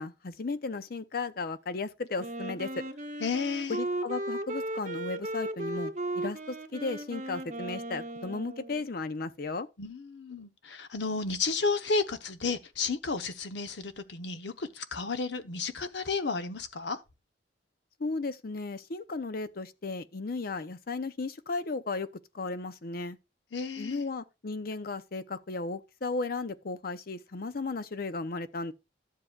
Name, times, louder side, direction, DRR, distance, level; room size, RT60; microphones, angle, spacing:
voice 1, 0.0-2.8 3.7-9.7 18.0-22.1 22.3-23.2 23.8-28.7, left 3 dB, 55° left, 0.6 m, -35 dB
Wind instrument woodwind instrument, 2.2-8.9, right 1 dB, 45° right, 0.8 m, -36 dB
voice 2, 3.2-3.8 9.8-17.0 23.5-24.0, left 4 dB, 75° left, 0.9 m, -32 dB
12.0 x 7.5 x 2.3 m
head